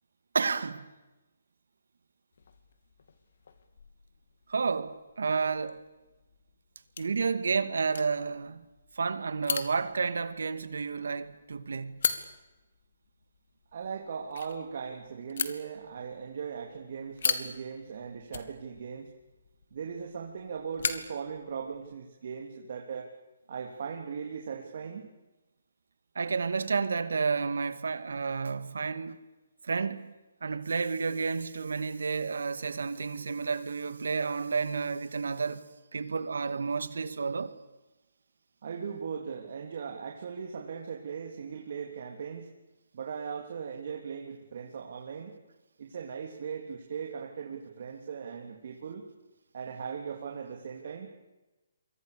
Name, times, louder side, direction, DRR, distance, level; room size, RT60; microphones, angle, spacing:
voice 1, 0.3-0.8 4.5-5.8 7.0-8.6 9.0-12.0 26.2-29.2 29.6-30.1 30.4-35.7 35.9-37.5, right 5 dB, 75° right, 2.2 m, -31 dB
sound 1, 2.3-22.0, left 5 dB, 65° left, 2.6 m, -40 dB
voice 2, 13.7-19.1 19.7-23.1 23.5-25.1 38.6-42.5 42.9-45.4 45.8-49.0 49.5-51.1, right 6 dB, 55° right, 3.3 m, -39 dB
28.5 x 24.0 x 7.0 m
hypercardioid pair, 145°, 0 cm